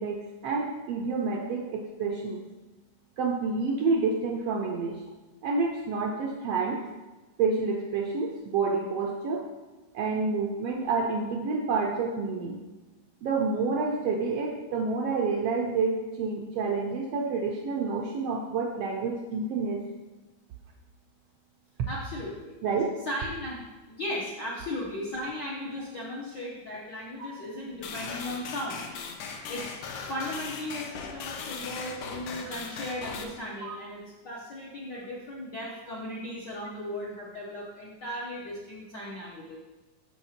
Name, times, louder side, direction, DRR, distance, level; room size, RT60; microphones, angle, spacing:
voice 1, 0.0-2.4 3.2-5.0 5.4-6.8 7.4-9.5 9.9-12.6 13.2-19.8 22.6-22.9 27.2-27.3 33.7-33.8, right 4 dB, 80° right, 1 dB, 1.4 m, -28 dB
voice 2, 21.9-22.6 23.0-23.6 23.9-28.8 29.5-29.8 30.1-39.6, left 1 dB, 65° left, -5 dB, 1.0 m, -36 dB
sound 1, 27.8-33.2, left 5 dB, 85° left, 2.3 m, -38 dB
6.4 x 5.4 x 5.7 m, 1.2 s
omnidirectional pair, 3.4 m